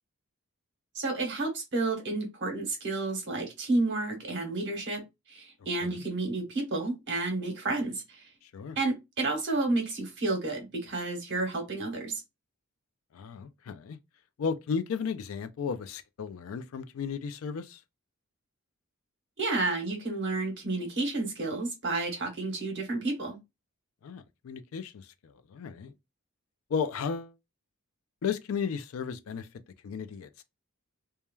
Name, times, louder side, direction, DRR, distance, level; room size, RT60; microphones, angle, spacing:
voice 1, 0.9-5.0 5.3-8.2 8.8-12.2 19.4-23.4, right 2 dB, 55° right, 1.0 m, -31 dB
voice 2, 13.1-14.0 14.4-17.8 24.0-25.1 25.5-25.9 26.7-27.3 28.2-29.5 29.8-30.4, left 6 dB, 65° left, 0.3 m, -34 dB
3.1 x 2.2 x 2.2 m
head